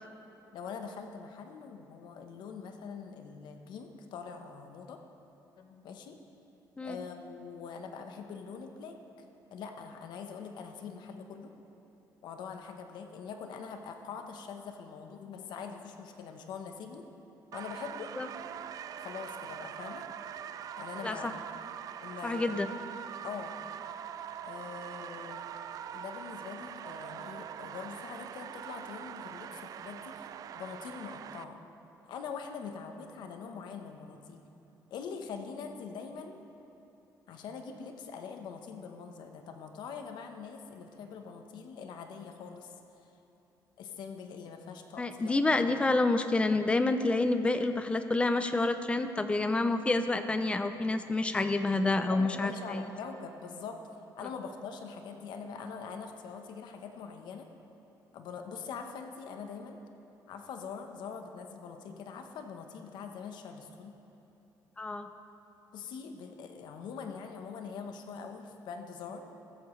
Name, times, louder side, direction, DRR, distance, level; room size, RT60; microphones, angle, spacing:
voice 1, 0.5-5.0 5.6-6.2 6.8-9.0 9.5-11.5 12.2-17.1 17.5-18.1 19.0-20.0 20.8-21.4 22.0-22.6 23.2-23.5 24.4-25.4 25.9-30.3 30.5-31.6 32.0-34.4 34.9-36.4 37.3-42.7 43.8-45.8 51.8-53.8 54.2-57.5 58.1-59.8 60.3-63.9 65.7-69.2, left 6 dB, 70° left, 5 dB, 1.0 m, -43 dB
sound 1, 17.5-31.4, right 9 dB, 50° right, 0.3 m, -43 dB
voice 2, 22.2-22.7 45.0-52.9 64.8-65.1, left 2 dB, 15° left, 9 dB, 0.5 m, -28 dB
15.0 x 13.5 x 3.2 m, 2.9 s
cardioid pair, 150°, 8 cm